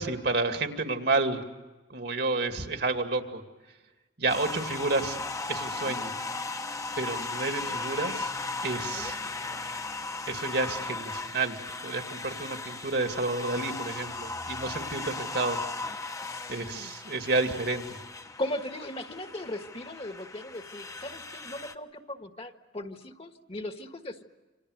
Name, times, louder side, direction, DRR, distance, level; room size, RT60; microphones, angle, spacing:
voice 1, 0.0-1.4 1.9-3.4 4.2-6.1 7.0-8.3 8.6-9.2 10.3-11.6 11.8-15.6 16.5-18.0, right 3 dB, 65° right, 6 dB, 2.4 m, -30 dB
sound 1, 4.3-21.7, left 3 dB, 20° left, 1.0 m, -37 dB
voice 2, 8.9-9.6 16.2-16.9 18.4-24.2, left 1 dB, 35° left, 7 dB, 1.5 m, -38 dB
28.5 x 26.0 x 6.6 m, 1.2 s
head